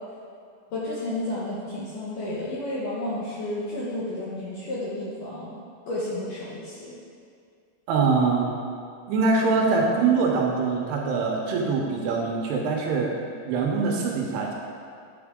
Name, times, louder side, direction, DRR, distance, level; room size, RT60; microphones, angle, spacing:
voice 1, 0.7-5.6 5.9-7.0, left 1 dB, 70° left, -8 dB, 2.1 m, -31 dB
voice 2, 7.9-8.5 9.1-13.1 13.5-14.5, right 4 dB, 75° right, -1 dB, 2.7 m, -23 dB
9.7 x 6.5 x 3.7 m, 2.3 s
omnidirectional pair, 5.0 m